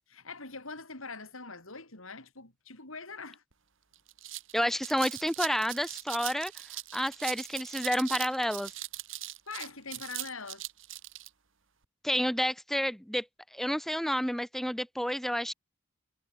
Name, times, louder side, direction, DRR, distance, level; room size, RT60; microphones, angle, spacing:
voice 1, 0.1-3.4 9.5-10.7, left 4 dB, 70° left, 5.9 m, -43 dB
sound 1, 3.5-3.6 3.9-11.3, right 15 dB, 60° right, 1.9 m, -40 dB
voice 2, 4.5-6.5 6.9-8.7 12.0-13.2 13.5-15.5, equal, ahead, 1.5 m, -30 dB
head